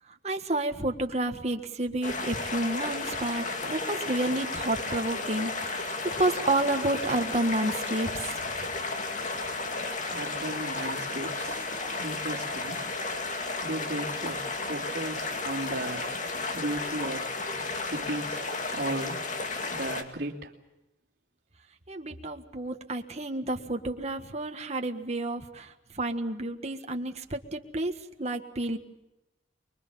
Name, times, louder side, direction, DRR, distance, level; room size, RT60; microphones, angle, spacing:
voice 1, 0.2-8.1 21.9-28.8, right 2 dB, 40° right, 5 dB, 1.7 m, -30 dB
sound 1, 2.0-20.0, left 3 dB, 45° left, 2.3 m, -33 dB
voice 2, 10.1-11.7 12.0-12.9 13.6-16.1 16.5-17.4 17.8-18.4 18.7-19.3 19.7-20.5, right 1 dB, 65° right, -7 dB, 2.8 m, -35 dB
25.0 x 23.0 x 7.3 m, 0.98 s
head